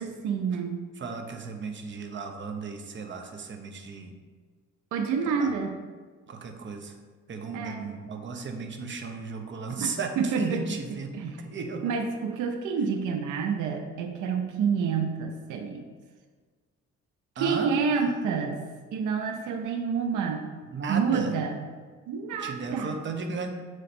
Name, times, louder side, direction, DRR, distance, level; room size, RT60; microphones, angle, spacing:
voice 1, 0.0-0.8 4.9-5.7 7.5-7.9 9.8-10.6 11.1-11.3 11.8-15.8 17.4-18.6 18.9-20.5 20.9-21.6 22.1-23.0, right 6 dB, 85° right, 5 dB, 0.6 m, -28 dB
voice 2, 1.0-4.1 5.3-5.5 6.3-7.0 7.3-11.9 17.4-17.7 20.7-21.3 22.4-23.5, right 4 dB, 40° right, 5 dB, 0.8 m, -35 dB
7.6 x 3.2 x 4.2 m, 1.5 s
cardioid pair, 90°, 30 cm